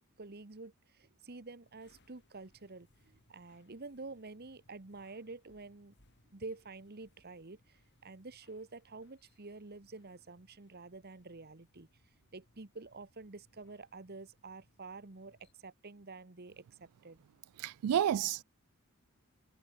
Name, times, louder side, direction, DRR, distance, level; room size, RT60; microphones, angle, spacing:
voice 1, 0.0-5.9 6.3-11.9 12.3-17.2, right 3 dB, 45° right, 1.2 m, -49 dB
sound 1, 1.6-15.5, left 1 dB, 50° left, 5.4 m, -71 dB
voice 2, 17.6-18.4, right 9 dB, 85° right, 0.3 m, -30 dB
head